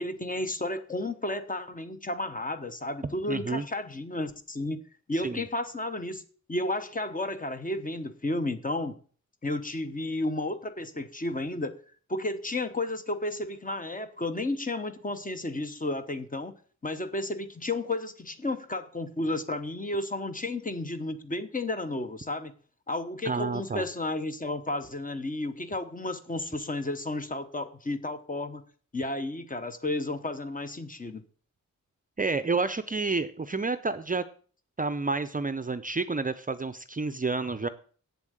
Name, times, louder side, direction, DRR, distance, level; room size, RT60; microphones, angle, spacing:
voice 1, 0.0-4.8 5.1-6.2 6.5-9.0 9.4-11.8 12.1-16.5 16.8-22.5 22.9-28.6 28.9-31.2, left 2 dB, 25° left, 1.0 m, -32 dB
voice 2, 3.3-3.6 5.2-5.4 23.2-23.8 32.2-34.2 34.8-37.7, right 3 dB, 25° right, 0.6 m, -29 dB
8.3 x 7.3 x 7.9 m
wide cardioid pair, 150°, 31 cm